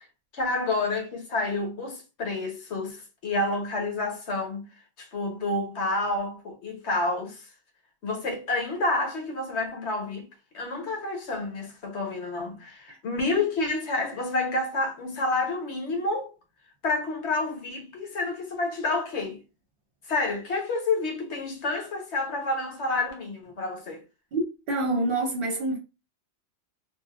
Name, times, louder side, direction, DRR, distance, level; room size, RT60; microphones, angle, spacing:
voice 1, 0.3-4.7 5.0-7.4 8.0-10.3 10.5-16.3 16.8-19.4 20.1-24.0, left 2 dB, 70° left, 1.3 m, -29 dB
voice 2, 24.3-25.8, right 2 dB, 60° right, 0.8 m, -27 dB
3.3 x 2.6 x 2.3 m
omnidirectional pair, 1.2 m